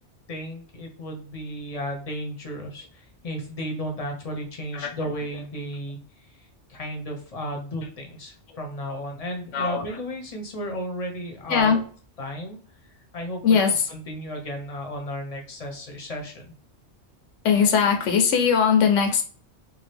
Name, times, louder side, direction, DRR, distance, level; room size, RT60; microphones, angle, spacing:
voice 1, 0.3-6.0 6.7-11.7 12.2-12.6 13.1-16.5, equal, 40° left, 0.7 m, -34 dB
voice 2, 4.7-5.1 9.5-10.0 11.5-11.9 13.4-13.9 17.4-19.2, left 6 dB, 85° left, 1.0 m, -20 dB
2.7 x 2.4 x 3.3 m
omnidirectional pair, 1.2 m